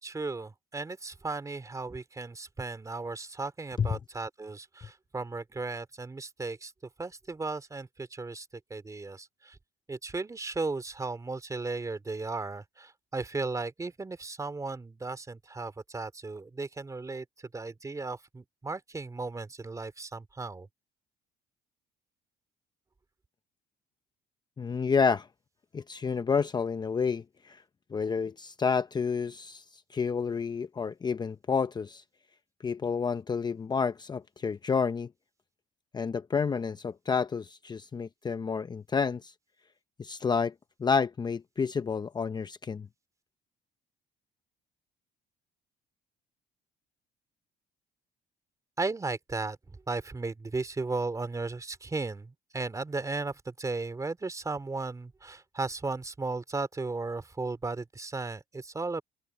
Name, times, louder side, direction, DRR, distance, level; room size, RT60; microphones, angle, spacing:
voice 1, 0.0-6.7 7.0-9.6 9.9-17.2 17.5-20.7 48.8-59.0, right 3 dB, 20° right, 3.0 m, -35 dB
voice 2, 24.6-25.3 25.7-27.6 27.9-32.0 32.6-35.1 35.9-39.3 40.0-40.5 40.8-42.9, left 5 dB, 25° left, 0.7 m, -29 dB
cardioid pair, 110°, 17 cm